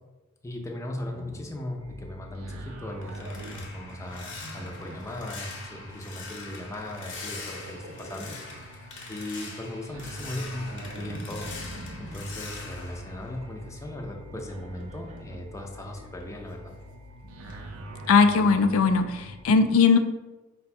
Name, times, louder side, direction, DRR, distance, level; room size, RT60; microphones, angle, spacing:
voice 1, 0.4-8.4 8.7-8.8 9.1-11.5 12.0-16.7, left 1 dB, 15° left, 1 dB, 0.5 m, -38 dB
Livestock farm animals working animals, 1.0-2.2 2.5-3.0 4.3-5.3 6.9-8.6 10.9-12.3 14.3-15.4 17.2-18.9, right 1 dB, 35° right, 0.5 m, -46 dB
sound 1, 1.8-19.4, right 1 dB, 85° right, 0.5 m, -44 dB
sound 2, 2.5-14.1 14.5-17.1 17.5-17.8 18.2-18.4, left 3 dB, 60° left, 0.9 m, -43 dB
voice 2, 18.1-20.0, left 5 dB, 75° left, 6 dB, 0.4 m, -19 dB
4.9 x 2.2 x 4.2 m, 1.1 s
head